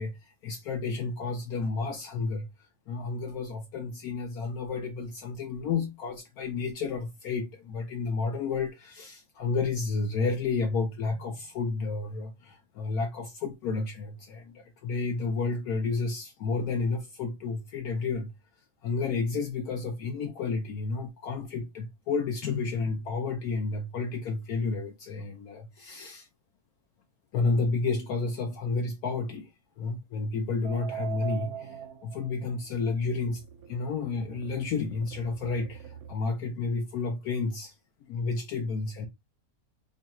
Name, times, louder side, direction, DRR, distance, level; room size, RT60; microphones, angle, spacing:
voice 1, 0.0-18.3 18.8-26.3 27.3-29.5 29.8-33.4 33.7-37.7 38.1-39.1, left 4 dB, 70° left, 1.2 m, -31 dB
sound 1, 30.6-36.1, right 10 dB, 75° right, 1.1 m, -42 dB
4.8 x 2.3 x 2.9 m
omnidirectional pair, 1.7 m